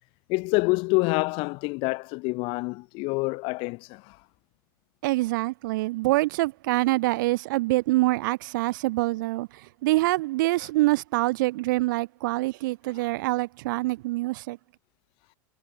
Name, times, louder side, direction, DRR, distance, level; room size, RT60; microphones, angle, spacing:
voice 1, 0.3-4.2 13.0-13.1, left 27 dB, 50° left, 1.6 m, -27 dB
voice 2, 5.0-14.6, right 20 dB, 65° right, 0.6 m, -25 dB
hypercardioid pair, 100°, 11 cm